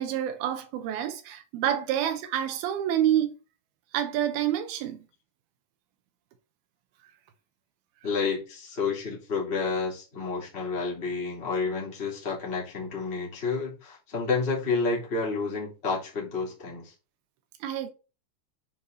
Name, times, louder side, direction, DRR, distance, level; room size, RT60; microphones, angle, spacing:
voice 1, 0.0-3.3 3.9-5.0 17.6-17.9, right 11 dB, 80° right, 2.2 m, -28 dB
voice 2, 8.0-16.9, left 4 dB, 15° left, 2.9 m, -30 dB
9.4 x 4.8 x 4.1 m
omnidirectional pair, 5.7 m